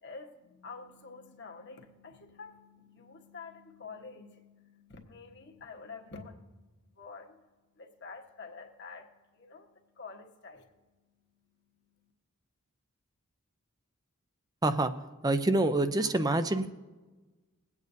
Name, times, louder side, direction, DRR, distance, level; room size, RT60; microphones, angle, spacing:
voice 1, 0.0-6.6 7.0-7.4 7.8-9.1 9.3-9.7 10.0-10.7, left 4 dB, 50° left, 2 dB, 1.3 m, -48 dB
voice 2, 15.2-16.7, right 2 dB, 15° right, 11 dB, 0.5 m, -26 dB
21.5 x 8.4 x 2.7 m, 1.2 s
head